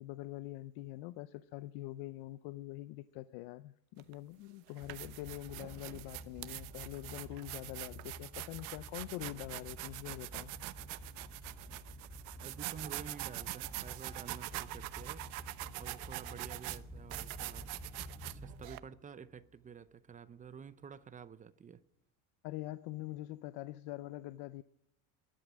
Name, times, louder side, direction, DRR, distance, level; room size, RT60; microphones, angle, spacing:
voice 1, 0.0-10.5 22.4-24.6, left 16 dB, 65° left, 0.7 m, -44 dB
sound 1, 4.0-4.1 4.7-18.8, right 20 dB, 85° right, 0.9 m, -44 dB
sound 2, 4.8-19.0 19.3-19.7 20.1-20.2 20.4-20.6, equal, 10° left, 2.0 m, -51 dB
voice 2, 12.4-15.2 15.8-17.7 18.2-21.8, right 7 dB, 20° right, 0.7 m, -50 dB
19.5 x 11.5 x 6.3 m
cardioid pair, 140°, 43 cm